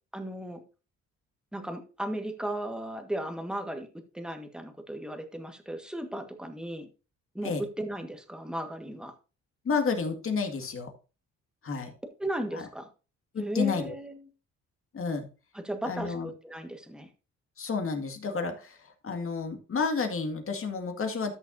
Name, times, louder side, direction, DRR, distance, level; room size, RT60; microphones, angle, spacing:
voice 1, 0.1-0.6 1.5-3.9 4.1-6.9 7.3-9.1 12.2-12.9 13.4-14.3 15.5-17.1, right 1 dB, 5° right, 6 dB, 1.6 m, -36 dB
voice 2, 9.6-10.9 11.6-11.9 12.5-12.6 13.3-13.9 14.9-15.3 15.8-16.3 17.6-21.3, left 5 dB, 45° left, 5 dB, 2.0 m, -30 dB
13.5 x 6.2 x 2.7 m, 0.32 s
cardioid pair, 90°, 30 cm